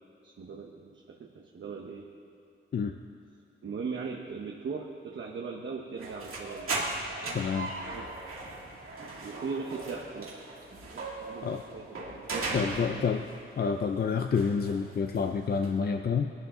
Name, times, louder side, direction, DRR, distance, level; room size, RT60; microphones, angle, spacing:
voice 1, 0.2-2.1 3.6-6.8 7.9-8.1 8.4-10.3 10.9-13.1, right 5 dB, 65° right, -1 dB, 1.1 m, -39 dB
sound 1, 6.0-13.4 13.7-15.8, right 2 dB, 90° right, 2.4 m, -38 dB
voice 2, 7.3-7.7 11.4-11.6 12.5-13.3 13.6-16.3, left 6 dB, 50° left, 5 dB, 0.5 m, -28 dB
22.0 x 12.0 x 3.8 m, 2.4 s
wide cardioid pair, 140°, 21 cm